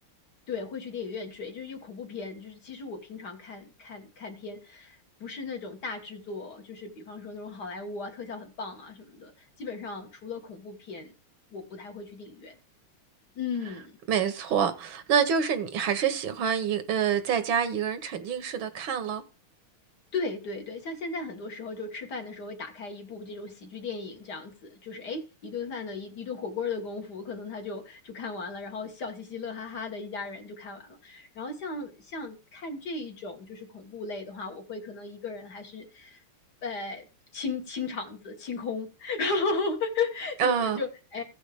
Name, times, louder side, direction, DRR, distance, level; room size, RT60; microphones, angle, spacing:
voice 1, 0.5-11.1 11.5-12.6 13.4-13.9 20.1-36.2 36.6-37.1 37.3-41.2, left 4 dB, 50° left, 1.8 m, -36 dB
voice 2, 14.1-19.2 40.4-40.8, right 7 dB, 70° right, 1.6 m, -27 dB
16.0 x 5.3 x 3.4 m
omnidirectional pair, 2.4 m